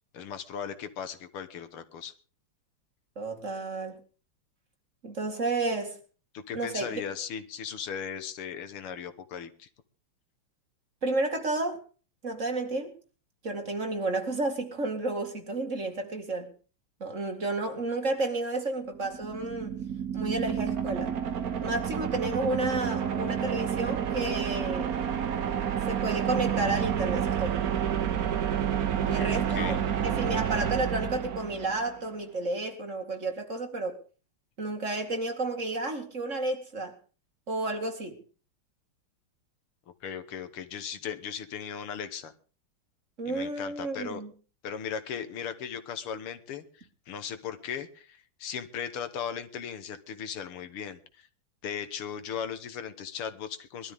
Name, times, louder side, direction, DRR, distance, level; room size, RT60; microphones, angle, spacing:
voice 1, 0.1-2.1 6.3-9.7 29.1-29.8 40.0-42.3 43.3-44.2 44.6-51.3 51.6-53.9, left 7 dB, 80° left, 2.1 m, -37 dB
voice 2, 3.2-4.0 5.0-6.0 6.5-7.0 11.0-11.8 12.2-12.9 13.4-16.5 17.0-19.7 20.1-21.1 21.6-25.0 25.9-27.6 29.1-29.7 30.0-34.0 34.6-36.9 37.5-38.2 43.2-44.3, right 2 dB, 35° right, 2.4 m, -31 dB
sound 1, 18.9-32.0, right 9 dB, 50° right, 1.3 m, -29 dB
21.5 x 13.0 x 3.6 m
omnidirectional pair, 2.4 m